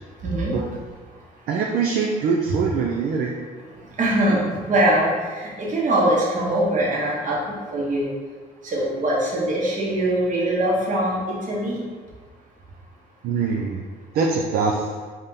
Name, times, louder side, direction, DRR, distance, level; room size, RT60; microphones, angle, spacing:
voice 1, 0.2-0.5 4.0-7.4 7.7-8.1 8.6-11.8, right 1 dB, 50° right, -4 dB, 1.1 m, -22 dB
voice 2, 1.5-3.4 13.2-13.8 14.1-14.8, right 5 dB, 65° right, 0 dB, 0.4 m, -23 dB
3.5 x 2.8 x 3.7 m, 1.5 s
cardioid pair, 110°, 17 cm